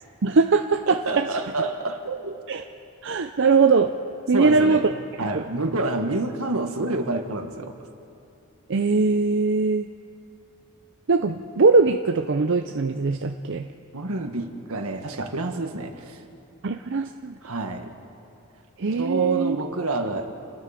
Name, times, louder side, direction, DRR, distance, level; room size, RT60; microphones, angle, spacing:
voice 1, 0.2-1.3 2.5-2.6 3.0-3.9 4.3-4.9 5.3-5.4 8.7-9.9 11.1-13.7 16.6-17.3 18.8-19.6, right 4 dB, 55° right, 6 dB, 0.6 m, -21 dB
voice 2, 0.9-2.4 4.3-7.7 13.9-16.2 17.4-17.9 19.0-20.3, right 2 dB, 80° right, 5 dB, 1.7 m, -28 dB
28.5 x 19.0 x 5.1 m, 2.5 s
head